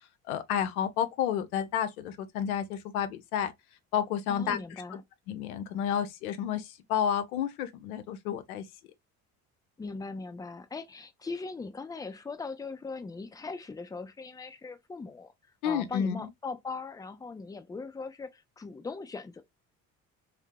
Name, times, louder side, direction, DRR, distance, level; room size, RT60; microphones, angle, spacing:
voice 1, 0.3-3.5 3.9-4.6 5.3-8.6 15.6-16.3, left 8 dB, 75° left, 0.6 m, -30 dB
voice 2, 4.3-5.0 9.8-15.3 15.6-19.4, left 4 dB, 10° left, 0.4 m, -40 dB
2.7 x 2.0 x 3.5 m
figure-of-eight pair, 55°, 43 cm